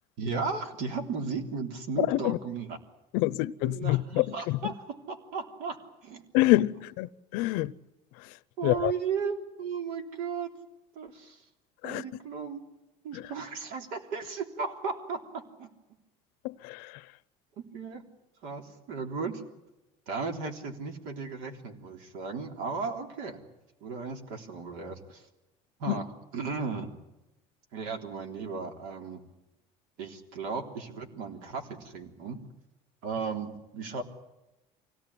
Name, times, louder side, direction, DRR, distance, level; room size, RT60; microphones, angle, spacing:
voice 1, 0.2-2.8 3.2-3.4 3.6-6.2 8.6-10.5 10.9-11.4 11.8-12.6 13.0-15.7 17.6-18.0 18.4-19.4 20.1-23.4 23.8-25.2 25.8-26.1 26.3-26.9 27.7-29.2 30.0-32.4 33.0-34.0, right 5 dB, 75° right, 3.5 m, -35 dB
voice 2, 2.0-2.4 3.1-4.7 6.3-7.7 8.6-8.9 11.8-12.0 13.1-13.2 16.4-16.9 25.9-26.0, left 18 dB, 80° left, 0.7 m, -26 dB
24.5 x 17.5 x 9.9 m
cardioid pair, 135°, 15 cm